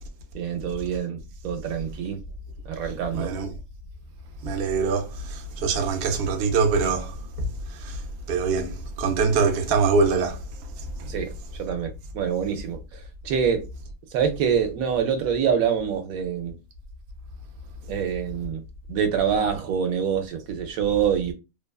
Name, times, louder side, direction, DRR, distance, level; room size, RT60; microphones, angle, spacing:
voice 1, 0.3-1.2 1.4-2.2 2.7-3.3 11.1-11.3 11.6-12.8 13.2-13.7 14.1-16.6 17.9-18.6 18.9-21.3, right 7 dB, 80° right, 1.0 m, -25 dB
voice 2, 3.1-3.6 4.4-8.0 8.3-10.4 11.0-11.1, right 4 dB, 65° right, 0.6 m, -24 dB
2.8 x 2.2 x 2.2 m
omnidirectional pair, 1.5 m